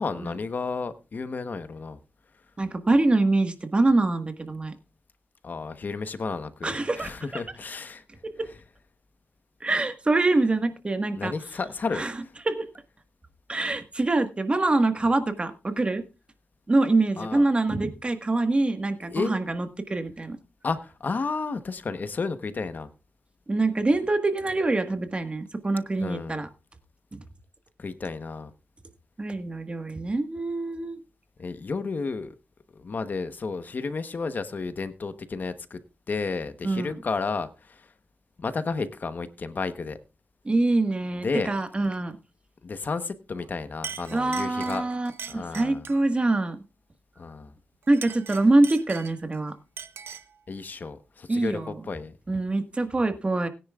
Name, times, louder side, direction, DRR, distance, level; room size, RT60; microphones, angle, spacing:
voice 1, 0.0-2.0 5.4-8.0 11.2-12.1 17.2-17.4 19.0-19.4 20.6-22.9 26.0-26.4 27.8-28.5 31.4-32.4 32.7-35.8 36.1-37.9 38.4-40.0 41.2-41.5 42.6-44.8 45.3-45.9 47.2-47.5 50.5-52.2, left 4 dB, 50° left, 1.0 m, -32 dB
voice 2, 2.6-4.7 6.6-7.4 8.4-8.5 9.6-11.3 11.9-12.1 12.4-12.7 13.5-16.0 16.7-20.4 23.5-26.5 27.1-27.2 29.2-31.0 36.6-37.0 40.4-42.2 44.1-46.6 47.9-49.5 51.3-51.7 52.3-53.5, right 2 dB, 30° right, 1.5 m, -25 dB
Chink clink, 43.3-43.5 43.8-46.1 47.8-49.4 49.8-50.4, right 6 dB, 80° right, 0.9 m, -40 dB
20.5 x 10.0 x 2.4 m
wide cardioid pair, 105°, 4 cm